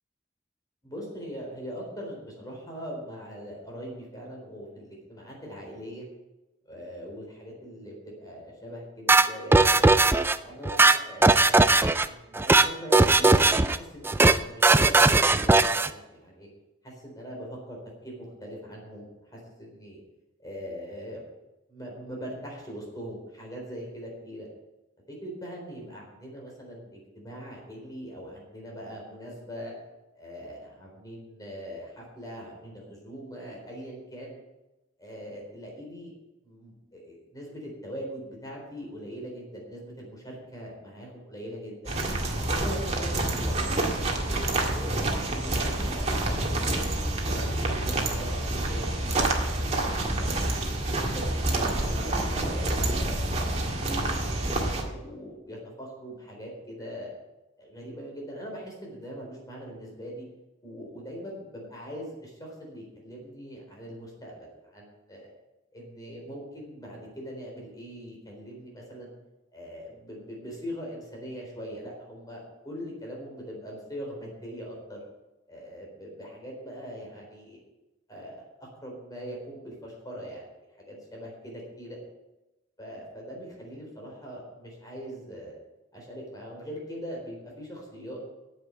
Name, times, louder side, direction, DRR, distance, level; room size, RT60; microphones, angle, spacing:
voice 1, 0.8-6.1 6.6-9.9 10.4-11.3 11.6-16.5 16.8-20.0 20.4-21.2 21.7-24.5 25.1-29.7 30.1-34.4 35.0-36.1 36.4-41.9 42.5-46.8 47.3-49.7 50.1-57.1 57.6-60.3 60.6-65.3 65.7-69.2 69.5-75.0 75.5-77.6 78.1-80.5 80.8-82.0 82.8-85.6 85.9-88.2, equal, 20° left, -2 dB, 3.9 m, -41 dB
sound 1, 9.1-10.4 10.7-12.1 12.3-12.7 12.9-13.8 14.0-14.4 14.6-15.9, right 3 dB, 10° right, 0.4 m, -19 dB
sound 2, 41.9-54.8, right 1 dB, 35° right, 1.9 m, -28 dB
9.7 x 8.2 x 8.9 m, 1.0 s
head